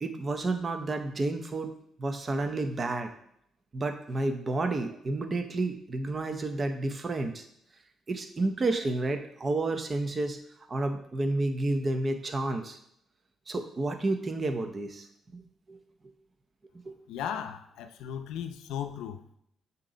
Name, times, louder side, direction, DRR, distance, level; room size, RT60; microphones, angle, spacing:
voice 1, 0.0-1.7 2.0-3.1 3.7-7.4 8.1-10.4 10.7-12.8 13.5-15.1 15.3-15.4 15.7-15.8 16.9-17.0, right 2 dB, 35° right, 0.8 m, -30 dB
voice 2, 17.1-19.4, left 9 dB, 90° left, 0.6 m, -36 dB
7.5 x 3.0 x 5.1 m
cardioid pair, 90°, 0 cm